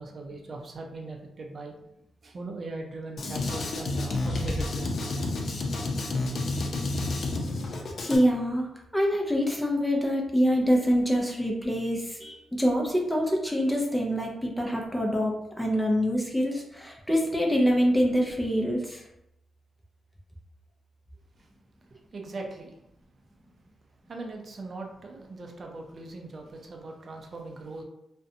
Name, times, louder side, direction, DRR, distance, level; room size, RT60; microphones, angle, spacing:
voice 1, 0.0-1.7 2.2-5.1 22.1-22.7 24.1-27.8, right 3 dB, 50° right, 2 dB, 0.5 m, -40 dB
Drum kit, 3.2-8.2, left 2 dB, 60° left, 0.4 m, -30 dB
voice 2, 8.0-8.7 8.9-19.0, equal, 5° left, -1 dB, 0.5 m, -25 dB
2.5 x 2.1 x 2.6 m, 0.82 s
cardioid pair, 65°, 0 cm